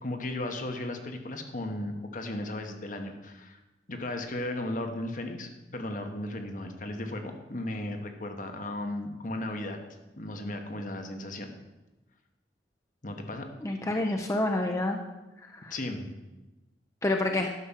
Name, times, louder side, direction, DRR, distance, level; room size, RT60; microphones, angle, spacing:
voice 1, 0.0-3.6 3.9-9.8 10.2-11.6 13.0-13.5 15.7-16.1, left 1 dB, 50° left, 5 dB, 1.3 m, -35 dB
voice 2, 13.6-15.0 15.4-15.7 17.0-17.5, left 2 dB, 20° left, 3 dB, 0.6 m, -28 dB
11.0 x 5.9 x 7.4 m, 1.1 s
head